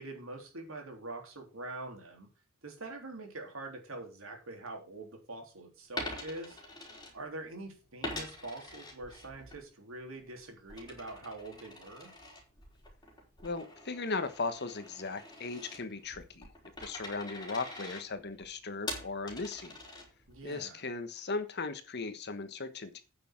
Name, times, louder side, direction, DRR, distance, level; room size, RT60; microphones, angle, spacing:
voice 1, 0.0-2.3 2.6-6.6 7.1-12.1 20.3-20.8, right 2 dB, 70° right, 3 dB, 3.5 m, -44 dB
Coin (dropping), 5.9-7.6 8.0-9.6 10.0-20.4, left 2 dB, 20° left, 3.8 m, -45 dB
voice 2, 13.4-16.5 16.8-19.8 20.4-23.0, left 3 dB, 50° left, 11 dB, 1.3 m, -37 dB
9.3 x 6.6 x 5.9 m, 0.31 s
head